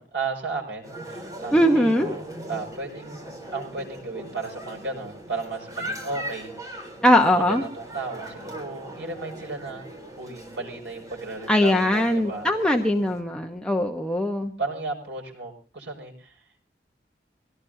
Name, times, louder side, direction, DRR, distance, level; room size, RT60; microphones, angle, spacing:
voice 1, 0.0-12.5 14.6-16.5, right 3 dB, 80° right, 0 dB, 6.7 m, -35 dB
sound 1, 0.8-13.2, right 1 dB, 20° right, 3.6 m, -39 dB
voice 2, 1.5-2.1 7.0-7.6 11.5-14.5, left 1 dB, 5° left, 2 dB, 1.0 m, -21 dB
24.0 x 18.0 x 2.7 m, 0.35 s
head